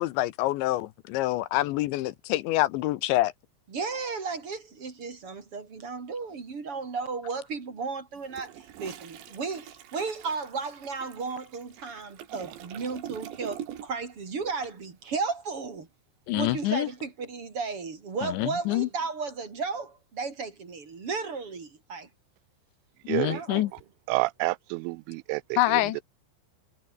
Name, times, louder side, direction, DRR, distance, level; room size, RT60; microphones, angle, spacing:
voice 1, 0.0-3.3 16.3-16.9 18.2-18.9 23.1-23.7 25.6-26.0, left 16 dB, 80° left, 3.1 m, -26 dB
voice 2, 3.7-15.9 16.3-22.1 23.2-23.7, right 4 dB, 30° right, 3.6 m, -34 dB
Toilet flush, 8.2-14.1 14.4-14.7, right 11 dB, 70° right, 4.4 m, -44 dB
voice 3, 23.1-23.4 24.1-25.6, right 24 dB, 90° right, 3.1 m, -29 dB
omnidirectional pair, 5.5 m